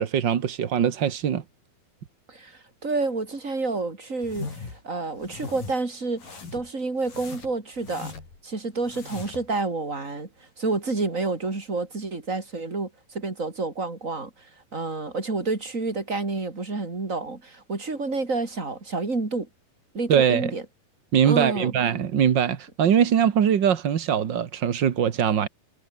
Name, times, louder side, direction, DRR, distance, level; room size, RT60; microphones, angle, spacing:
voice 1, 0.0-1.4 20.1-20.5 21.1-25.5, right 8 dB, 80° right, 1.0 m, -22 dB
voice 2, 2.3-8.1 8.4-10.3 10.6-14.3 14.7-19.5 19.9-20.6 21.2-21.7, right 3 dB, 20° right, 3.8 m, -29 dB
sound 1, 4.2-4.8 5.2-5.8 6.2-6.7 7.0-8.4 8.8-9.5, left 4 dB, 60° left, 7.8 m, -39 dB
omnidirectional pair, 4.4 m